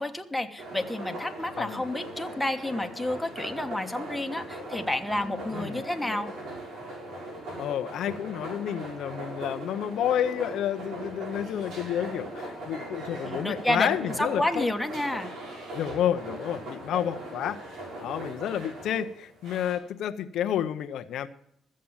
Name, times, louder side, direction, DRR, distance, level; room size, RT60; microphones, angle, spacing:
voice 1, 0.0-6.3 13.2-15.3, left 1 dB, 5° left, 5 dB, 1.3 m, -30 dB
sound 1, 0.6-19.7, right 1 dB, 80° right, 5.0 m, -39 dB
voice 2, 5.5-5.8 7.6-14.7 15.7-17.6 18.0-21.3, left 10 dB, 80° left, 9 dB, 0.7 m, -30 dB
14.0 x 7.5 x 7.2 m, 0.73 s
cardioid pair, 90°, 0 cm